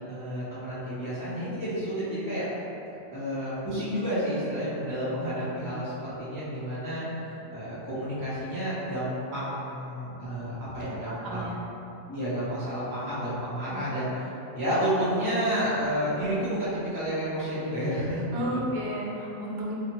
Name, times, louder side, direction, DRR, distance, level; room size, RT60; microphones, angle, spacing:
voice 1, 0.0-2.5 3.1-11.5 12.1-18.6, equal, 20° left, -13 dB, 0.6 m, -30 dB
voice 2, 10.8-11.6 13.7-13.8 18.3-19.7, equal, 90° right, -4 dB, 1.4 m, -33 dB
3.9 x 3.1 x 2.9 m, 3.0 s
omnidirectional pair, 1.8 m